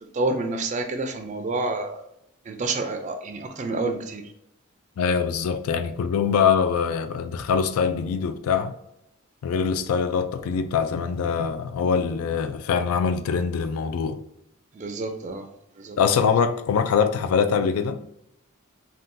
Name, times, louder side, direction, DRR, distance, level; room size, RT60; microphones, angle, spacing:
voice 1, 0.1-2.0 2.5-4.2 14.7-15.5 15.8-16.0, right 3 dB, 35° right, 0.3 m, -28 dB
voice 2, 5.0-8.7 9.4-14.2 16.0-18.0, left 6 dB, 85° left, 0.3 m, -23 dB
3.6 x 2.3 x 2.6 m
head